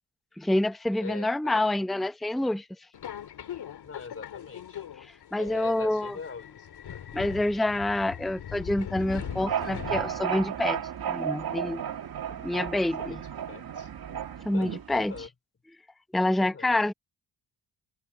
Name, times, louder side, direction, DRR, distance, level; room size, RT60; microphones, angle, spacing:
voice 1, 0.4-2.7 5.0-6.2 7.1-11.8 12.4-13.2 14.4-15.3 16.1-16.9, left 1 dB, ahead, 0.7 m, -27 dB
voice 2, 1.0-1.7 3.8-4.9 5.3-7.1 12.3-12.4 13.0-13.2 13.5-13.9 14.5-15.3 16.4-16.7, left 5 dB, 35° left, 3.5 m, -43 dB
Subway metro underground, 2.9-10.5, left 9 dB, 65° left, 2.5 m, -40 dB
sound 1, 9.2-15.3, right 8 dB, 60° right, 2.5 m, -34 dB
cardioid pair, 120°, 41 cm